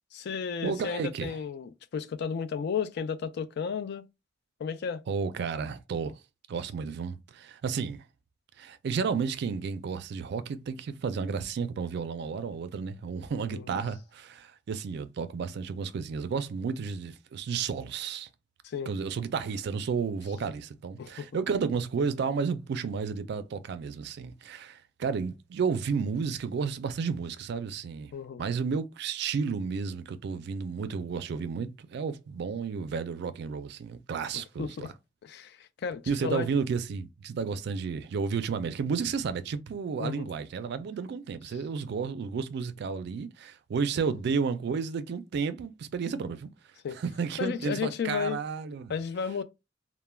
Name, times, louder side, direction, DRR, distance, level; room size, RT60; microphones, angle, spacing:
voice 1, 0.1-4.0 4.6-5.0 13.5-13.8 18.6-18.9 21.0-21.3 28.1-28.4 34.3-34.9 35.2-36.5 40.0-40.3 46.8-47.0 47.4-48.4 48.9-49.4, left 6 dB, 60° left, 0.3 m, -33 dB
voice 2, 0.6-1.4 5.1-6.2 6.5-8.0 8.6-18.3 18.9-28.1 28.4-34.9 36.1-46.5 46.9-49.0, right 5 dB, 60° right, 0.3 m, -32 dB
2.2 x 2.1 x 3.1 m
head